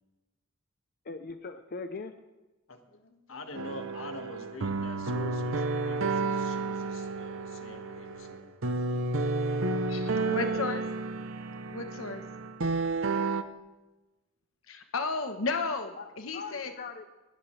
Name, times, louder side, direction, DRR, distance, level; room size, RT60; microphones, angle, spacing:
voice 1, 1.0-2.1 10.2-10.7 16.0-16.1 16.3-17.1, left 4 dB, 50° left, 0.7 m, -41 dB
voice 2, 2.7-8.6 9.4-10.2, left 2 dB, 70° left, 1.7 m, -46 dB
sound 1, 3.5-13.4, right 3 dB, 70° right, 0.8 m, -31 dB
voice 3, 10.3-10.8 11.7-12.2 14.7-16.7, left 4 dB, 90° left, 1.1 m, -33 dB
21.0 x 16.0 x 3.3 m
head